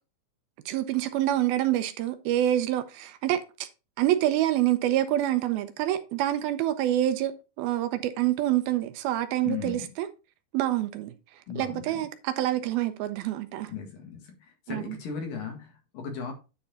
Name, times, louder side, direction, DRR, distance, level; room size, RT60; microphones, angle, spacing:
voice 1, 0.7-3.7 4.0-10.1 10.5-11.1 11.6-13.7 14.7-15.0, right 13 dB, 80° right, 2.6 m, -27 dB
voice 2, 9.4-9.9 11.5-12.1 13.7-16.3, left 6 dB, 65° left, 3.5 m, -37 dB
10.0 x 4.7 x 4.1 m
omnidirectional pair, 4.4 m